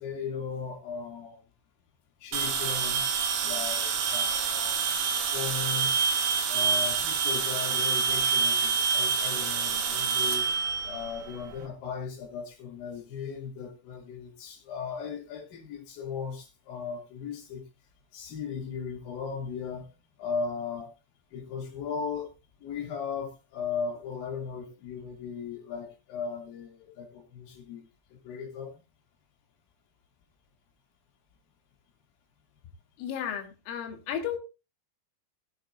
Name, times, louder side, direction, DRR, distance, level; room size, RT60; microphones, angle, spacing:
voice 1, 0.0-1.4 2.2-3.0 3.4-4.8 5.3-5.9 6.5-10.5 10.8-17.6 18.1-19.9 20.2-20.9 21.3-22.3 22.6-27.8 28.2-28.8, left 6 dB, 70° left, 4.8 m, -37 dB
sound 1, 2.3-11.6, right 6 dB, 80° right, 1.6 m, -27 dB
voice 2, 33.0-34.4, left 8 dB, 90° left, 4.3 m, -33 dB
19.0 x 9.0 x 2.5 m
omnidirectional pair, 5.6 m